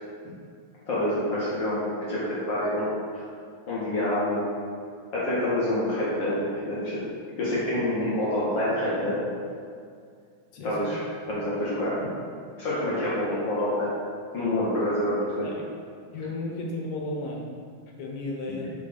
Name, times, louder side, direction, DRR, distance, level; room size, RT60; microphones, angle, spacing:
voice 1, 0.9-3.2 3.7-4.5 5.1-6.9 7.4-9.2 10.6-11.0 11.3-12.1 12.6-13.9 14.3-15.5, left 1 dB, 90° left, -9 dB, 1.0 m, -27 dB
voice 2, 10.5-10.9 15.4-15.5 16.1-17.4 18.0-18.7, left 2 dB, 70° left, -1 dB, 1.9 m, -33 dB
4.8 x 3.8 x 5.1 m, 2.2 s
omnidirectional pair, 3.7 m